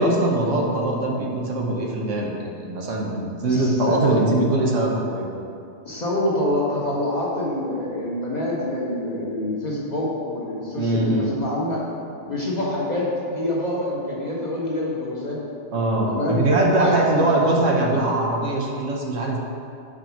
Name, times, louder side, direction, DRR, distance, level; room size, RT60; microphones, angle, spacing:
voice 1, 0.0-5.3 10.8-11.3 15.7-19.4, right 2 dB, 80° right, -1 dB, 1.2 m, -22 dB
voice 2, 3.5-4.4 5.8-11.8 12.3-15.4 16.1-16.4 16.7-17.4, left 1 dB, 35° left, -5 dB, 1.2 m, -26 dB
5.0 x 4.5 x 5.8 m, 2.5 s
omnidirectional pair, 1.3 m